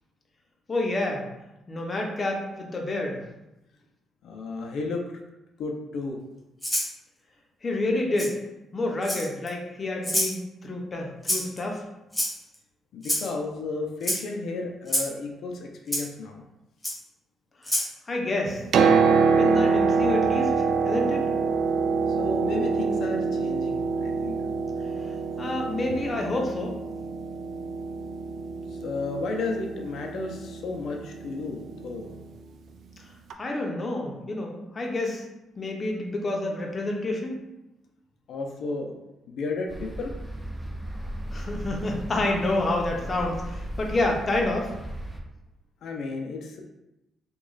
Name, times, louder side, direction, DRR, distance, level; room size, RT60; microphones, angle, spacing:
voice 1, 0.7-1.3 1.7-3.2 7.6-8.4 8.7-11.9 17.6-17.8 18.1-18.6 19.4-21.3 25.4-26.8 33.4-35.2 35.6-37.4 41.3-44.7, left 2 dB, 35° left, 1 dB, 0.7 m, -28 dB
voice 2, 4.2-5.1 5.6-6.2 12.9-16.4 22.1-24.4 28.7-32.1 38.3-38.9 39.3-40.1 45.8-46.6, left 3 dB, 70° left, 2 dB, 0.4 m, -33 dB
Rattle (instrument), 6.6-6.9 8.2-8.3 9.0-9.5 10.0-10.3 11.2-11.6 12.1-12.6 13.0-13.3 14.0-14.2 14.9-15.1 15.9-16.0 16.8-16.9 17.6-17.9, equal, 10° left, 1.1 m, -26 dB
Piano, 18.5-32.2 33.3-33.4, right 5 dB, 65° right, 0.3 m, -26 dB
sound 1, 39.7-45.2, right 1 dB, 5° right, 0.6 m, -36 dB
3.1 x 2.2 x 3.8 m, 0.97 s
cardioid pair, 90°, 0 cm